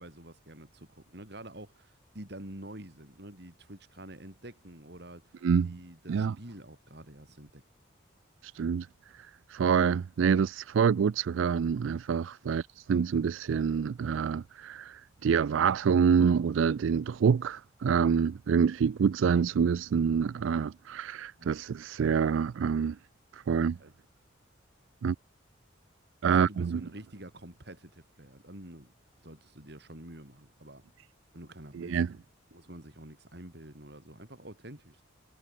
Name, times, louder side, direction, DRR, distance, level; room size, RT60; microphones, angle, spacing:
voice 1, 0.0-7.6 12.4-12.6 21.4-21.6 23.8-23.9 26.2-28.9 29.2-30.8 31.3-32.2 32.5-35.0, right 1 dB, 55° right, 3.4 m, -48 dB
voice 2, 5.4-5.7 6.1-6.3 8.4-8.9 9.5-23.0 23.3-23.8 25.0-25.2 26.2-26.8 31.7-32.1, right 6 dB, 80° right, 0.4 m, -26 dB
head